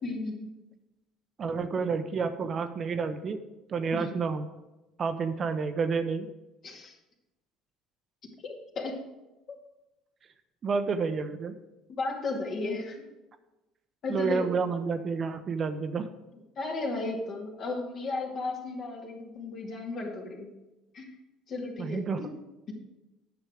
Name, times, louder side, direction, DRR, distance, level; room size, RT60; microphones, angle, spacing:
voice 1, 0.0-0.5 3.9-4.1 6.6-7.0 8.4-9.0 11.9-13.0 14.0-14.7 16.6-20.5 20.9-21.1 21.5-22.3, left 3 dB, 50° left, 0 dB, 2.2 m, -34 dB
voice 2, 1.4-3.4 3.7-4.5 5.0-6.3 10.6-11.5 14.1-16.1 21.8-22.2, right 5 dB, 40° right, 8 dB, 0.8 m, -29 dB
9.4 x 6.3 x 4.9 m, 1.0 s
hypercardioid pair, 65°, 0 cm